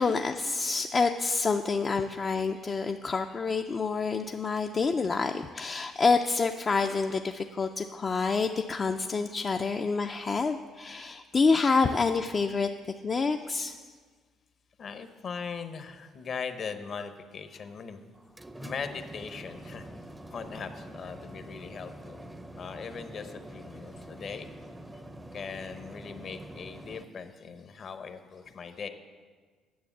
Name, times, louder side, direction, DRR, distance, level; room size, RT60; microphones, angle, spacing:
voice 1, 0.0-12.7 13.0-13.8, left 4 dB, 35° left, 5 dB, 0.4 m, -27 dB
voice 2, 14.8-18.0 18.6-19.9 20.3-22.2 22.6-24.5 25.3-28.9, left 6 dB, 50° left, 9 dB, 0.9 m, -40 dB
sound 1, 18.1-27.0, right 1 dB, 10° right, 0.6 m, -45 dB
9.5 x 7.1 x 7.2 m, 1.5 s
supercardioid pair, 85°, 0 cm